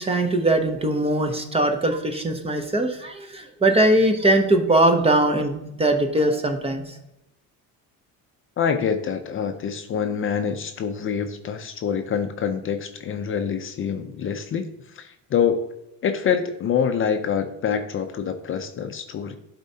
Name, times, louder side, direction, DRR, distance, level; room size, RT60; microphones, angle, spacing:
voice 1, 0.0-7.0, right 1 dB, 15° right, 5 dB, 0.6 m, -21 dB
voice 2, 8.6-15.6 16.0-19.3, left 7 dB, 35° left, 7 dB, 0.5 m, -26 dB
11.5 x 4.3 x 2.7 m, 0.85 s
cardioid pair, 145°, 36 cm